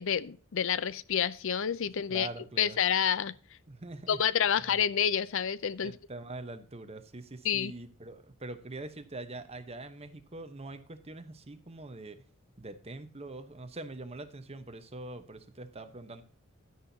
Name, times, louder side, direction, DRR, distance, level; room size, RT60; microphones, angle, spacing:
voice 1, 0.0-2.3 2.6-3.3 4.1-6.0 7.4-7.7, left 8 dB, 65° left, 0.5 m, -28 dB
voice 2, 2.1-2.8 3.7-4.2 5.8-12.2 12.6-16.2, right 2 dB, 30° right, 1.0 m, -43 dB
11.0 x 10.0 x 2.8 m
head